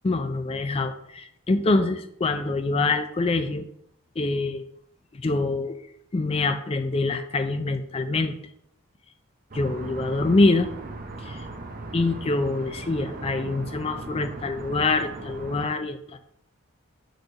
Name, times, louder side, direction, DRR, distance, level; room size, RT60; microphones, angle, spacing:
voice 1, 0.0-3.7 4.2-4.6 5.1-5.8 6.1-8.4 9.5-10.7 11.2-11.4 11.9-16.2, left 3 dB, 25° left, 9 dB, 0.4 m, -25 dB
sound 1, 9.5-15.7, right 2 dB, 40° right, 0.8 m, -38 dB
6.4 x 3.2 x 5.6 m, 0.72 s
head